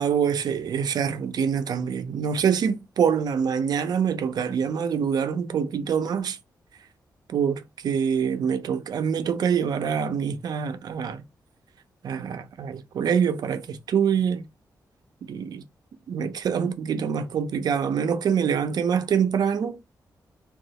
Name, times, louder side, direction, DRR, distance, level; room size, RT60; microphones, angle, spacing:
voice 1, 0.0-6.4 7.3-11.2 12.0-14.4 15.3-15.6 16.1-19.8, right 7 dB, 70° right, 0.5 m, -25 dB
2.7 x 2.3 x 3.9 m
wide cardioid pair, 120°, 7 cm